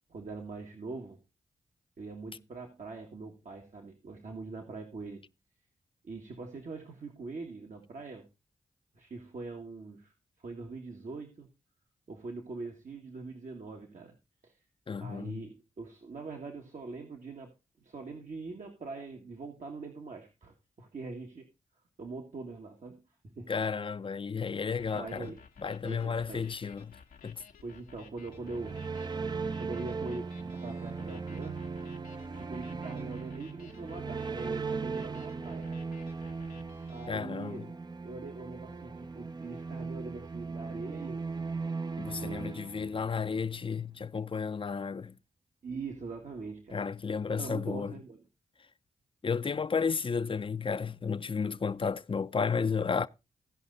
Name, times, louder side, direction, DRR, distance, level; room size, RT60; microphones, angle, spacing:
voice 1, 0.1-1.2 2.0-5.2 6.0-8.3 8.9-10.1 10.4-11.5 12.1-14.1 14.4-14.6 15.0-17.5 17.8-21.5 22.0-23.5 24.9-25.4 25.8-26.5 27.6-28.8 29.6-31.7 32.4-35.8 36.9-37.7 38.0-41.2 42.2-42.4 45.6-46.8 47.3-48.2, right 3 dB, 60° right, 1.8 m, -42 dB
voice 2, 14.9-15.4 23.5-25.3 25.6-27.0 27.2-27.4 37.1-37.7 42.0-45.2 46.7-47.9 49.2-53.1, left 5 dB, 40° left, 0.6 m, -32 dB
sound 1, 24.7-37.1, left 6 dB, 90° left, 1.1 m, -56 dB
sound 2, 28.2-43.4, right 4 dB, 30° right, 0.6 m, -38 dB
16.0 x 5.5 x 4.0 m
cardioid pair, 45°, 14 cm